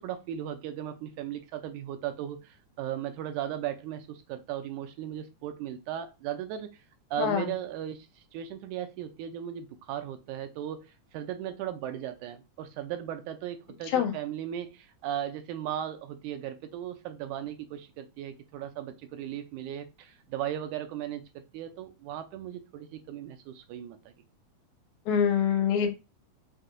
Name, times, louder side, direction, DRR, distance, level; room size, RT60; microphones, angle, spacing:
voice 1, 0.0-6.7 7.1-8.1 8.3-10.9 11.1-24.1, right 10 dB, 85° right, 2.1 m, -37 dB
voice 2, 7.2-7.5 13.9-14.1 25.1-25.9, left 8 dB, 80° left, 2.0 m, -25 dB
5.7 x 2.7 x 2.6 m
omnidirectional pair, 3.5 m